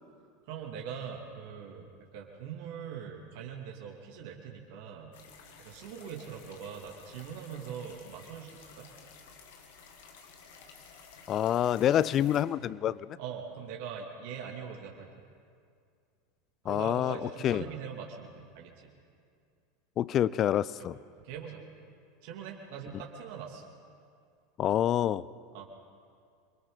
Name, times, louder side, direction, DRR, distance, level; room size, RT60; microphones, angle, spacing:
voice 1, 0.5-5.1 5.6-8.9 13.2-15.2 16.6-18.9 20.8-20.9 21.2-21.6 22.2-23.6 25.5-25.7, right 7 dB, 60° right, 0 dB, 2.6 m, -42 dB
sound 1, 5.1-12.4, left 5 dB, 65° left, 2.3 m, -53 dB
voice 2, 11.3-13.1 16.7-17.2 17.4-17.7 20.0-21.0 24.6-25.2, left 11 dB, 40° left, 20 dB, 0.5 m, -27 dB
28.0 x 23.0 x 4.0 m, 2.3 s
figure-of-eight pair, 80°, 0 cm